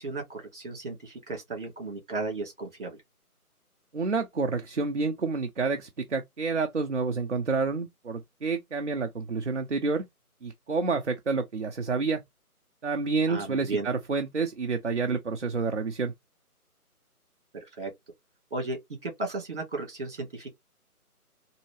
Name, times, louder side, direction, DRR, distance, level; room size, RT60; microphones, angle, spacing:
voice 1, 0.0-3.0 13.3-13.9 17.5-17.9 18.5-20.5, right 3 dB, 35° right, 2.0 m, -35 dB
voice 2, 3.9-10.1 10.4-12.2 12.8-16.1, right 4 dB, 50° right, 0.5 m, -29 dB
3.9 x 2.7 x 3.1 m
figure-of-eight pair, 175°, 45 cm